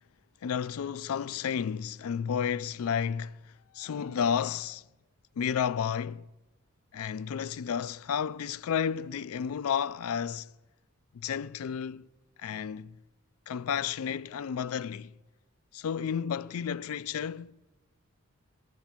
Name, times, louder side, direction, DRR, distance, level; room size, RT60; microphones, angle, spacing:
voice 1, 0.4-4.8 5.4-6.3 6.9-10.5 11.1-12.1 12.4-13.0 13.5-15.1 15.7-17.6, left 7 dB, 85° left, 0.4 m, -32 dB
21.5 x 8.1 x 7.4 m
head